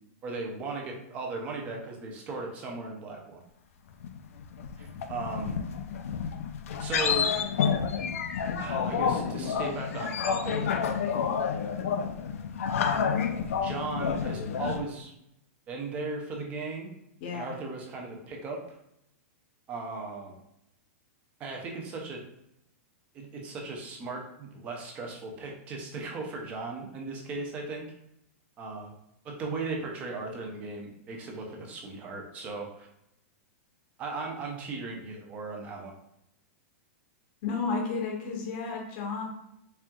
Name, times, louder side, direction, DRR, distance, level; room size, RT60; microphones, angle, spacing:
voice 1, 0.2-3.4 4.8-5.5 6.8-7.3 8.6-10.8 13.6-15.1 15.7-16.9 17.3-18.6 19.7-20.4 21.4-22.2 23.1-27.9 28.6-28.9 29.2-32.9 34.0-35.9, right 3 dB, 15° right, 1 dB, 0.5 m, -37 dB
sound 1, 4.0-14.8, left 6 dB, 65° left, 0.4 m, -29 dB
voice 2, 17.2-17.6 37.4-39.2, left 4 dB, 35° left, 0 dB, 0.8 m, -32 dB
4.3 x 3.5 x 2.3 m, 0.80 s
supercardioid pair, 175°, 8 cm